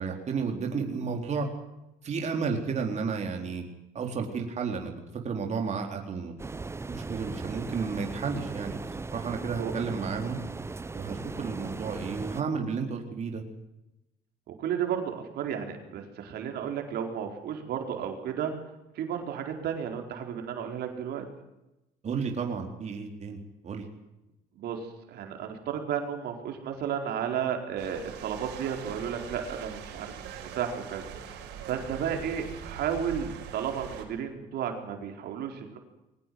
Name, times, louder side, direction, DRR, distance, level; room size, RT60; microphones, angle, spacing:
voice 1, 0.0-1.5 2.0-3.6 3.9-4.9 5.2-6.3 6.9-10.4 10.9-13.4 22.0-23.4 23.6-23.8, right 5 dB, 40° right, 2 dB, 4.1 m, -32 dB
sound 1, 6.4-12.4, right 3 dB, 15° right, 0.8 m, -38 dB
voice 2, 14.5-18.5 18.9-21.3 24.6-31.4 31.7-35.8, right 8 dB, 70° right, 4 dB, 4.6 m, -33 dB
sound 2, 27.8-34.0, right 8 dB, 90° right, 6.0 m, -42 dB
22.5 x 19.5 x 7.8 m, 0.93 s
cardioid pair, 110°, 17 cm